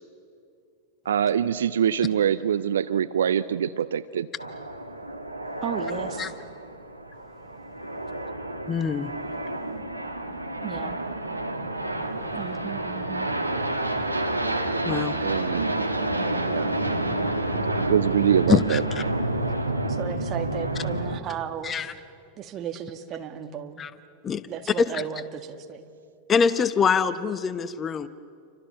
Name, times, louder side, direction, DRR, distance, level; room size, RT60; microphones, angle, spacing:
voice 1, 1.1-4.3 15.2-15.8 16.4-16.8 17.6-18.8, right 9 dB, 65° right, 15 dB, 0.6 m, -24 dB
sound 1, 4.4-21.2, right 1 dB, 85° right, 1.6 m, -29 dB
voice 2, 5.6-6.3 10.6-11.0 12.3-13.3 19.9-21.9 22.4-23.8 24.5-25.9, right 9 dB, 30° right, 6 dB, 1.9 m, -35 dB
voice 3, 8.7-9.1 14.8-15.1 18.5-19.0 21.6-21.9 23.8-23.9 24.2-24.4 24.8-25.0 26.3-28.1, left 6 dB, 20° left, 14 dB, 0.9 m, -24 dB
29.5 x 25.0 x 6.9 m, 2.5 s
figure-of-eight pair, 90°, 0 cm